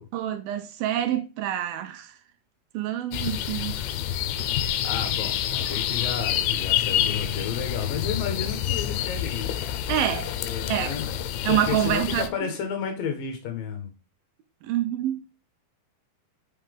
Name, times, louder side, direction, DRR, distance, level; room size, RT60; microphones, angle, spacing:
voice 1, 0.1-2.2 2.7-3.8 9.9-10.3 10.7-11.0 11.5-12.5 14.6-15.2, right 11 dB, 75° right, 2.4 m, -27 dB
sound 1, 3.1-12.3, left 10 dB, 85° left, 2.5 m, -28 dB
voice 2, 4.8-9.7 10.4-11.2 11.5-13.9, left 7 dB, 70° left, 2.8 m, -32 dB
5.8 x 5.6 x 3.4 m
omnidirectional pair, 4.5 m